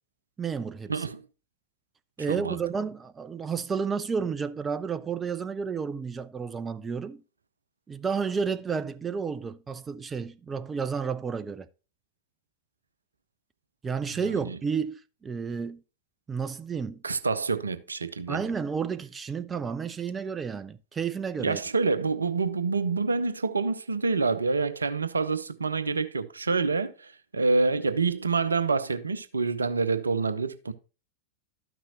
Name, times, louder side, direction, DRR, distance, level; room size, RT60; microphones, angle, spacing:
voice 1, 0.4-1.1 2.2-7.2 7.9-11.7 13.8-15.8 16.3-17.0 18.3-21.6, right 6 dB, 15° right, 0.4 m, -31 dB
voice 2, 0.9-1.2 2.3-2.6 14.4-14.6 17.0-18.5 21.4-30.7, right 4 dB, 75° right, 0.7 m, -27 dB
12.5 x 6.0 x 2.8 m
figure-of-eight pair, 90°, 0 cm